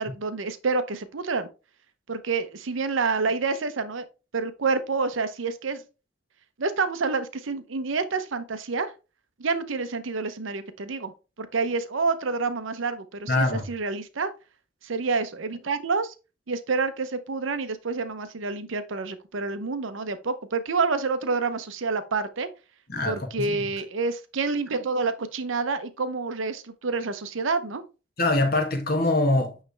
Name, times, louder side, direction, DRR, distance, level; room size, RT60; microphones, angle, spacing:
voice 1, 0.0-1.5 2.1-4.1 4.3-5.8 6.6-8.9 9.4-11.1 11.4-14.3 14.8-16.1 16.5-22.5 23.1-27.8, right 4 dB, 80° right, 0.7 m, -28 dB
voice 2, 13.3-13.6 22.9-23.6 28.2-29.6, left 2 dB, 50° left, 1.3 m, -24 dB
9.0 x 3.3 x 3.3 m
head